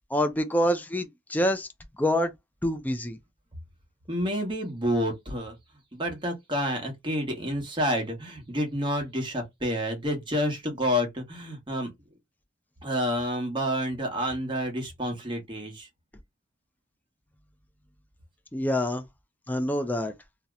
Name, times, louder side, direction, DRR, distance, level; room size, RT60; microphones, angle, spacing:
voice 1, 0.1-1.7 2.0-2.3 2.6-3.2 18.5-19.0 19.5-20.1, equal, 10° left, 0.3 m, -26 dB
voice 2, 4.1-5.6 5.9-11.9 12.8-15.9, equal, 25° right, 1.0 m, -29 dB
2.8 x 2.0 x 3.5 m
head